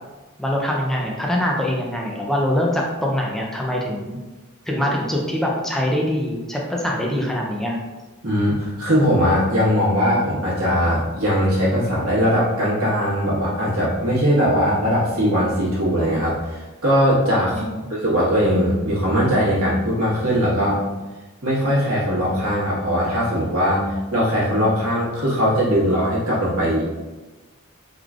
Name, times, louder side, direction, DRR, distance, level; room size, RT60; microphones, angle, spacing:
voice 1, 0.4-4.2 4.7-7.8 17.5-17.9, left 1 dB, ahead, -2 dB, 0.4 m, -23 dB
voice 2, 8.2-17.6 17.9-20.8 21.4-23.8 24.1-27.1, equal, 75° right, -7 dB, 1.4 m, -20 dB
3.7 x 3.1 x 2.4 m, 1.2 s
head